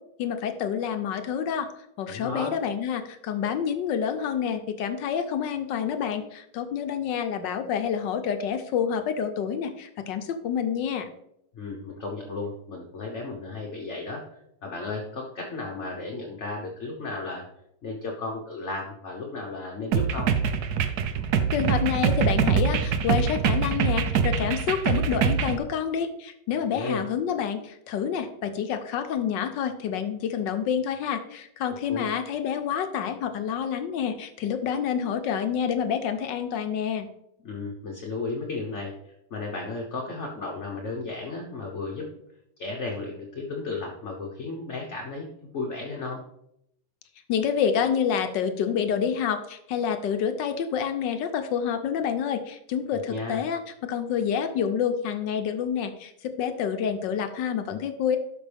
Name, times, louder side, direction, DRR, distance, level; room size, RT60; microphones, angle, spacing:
voice 1, 0.2-1.7 2.0-11.1 21.5-37.1 47.3-58.2, left 8 dB, 70° left, 8 dB, 1.3 m, -28 dB
voice 2, 2.1-2.5 11.5-14.2 14.6-17.4 17.8-20.3 26.7-27.0 31.9-32.1 37.4-42.1 42.6-45.3 45.5-46.2 53.1-53.4, left 3 dB, 45° left, 0 dB, 1.1 m, -34 dB
sound 1, 19.9-25.6, right 6 dB, 70° right, 1.0 m, -24 dB
12.0 x 5.4 x 3.4 m, 0.77 s
omnidirectional pair, 2.2 m